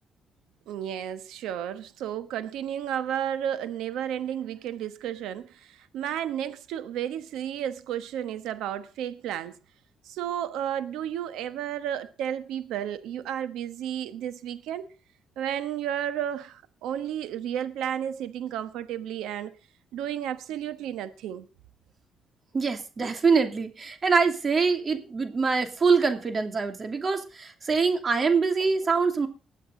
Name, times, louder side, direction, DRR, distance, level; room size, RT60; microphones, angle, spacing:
voice 1, 0.7-9.5 10.0-14.9 15.4-19.5 19.9-21.5, right 10 dB, 90° right, 1.1 m, -32 dB
voice 2, 22.5-29.3, right 5 dB, 40° right, 2.6 m, -24 dB
20.5 x 8.3 x 3.9 m
cardioid pair, 90°, 0 cm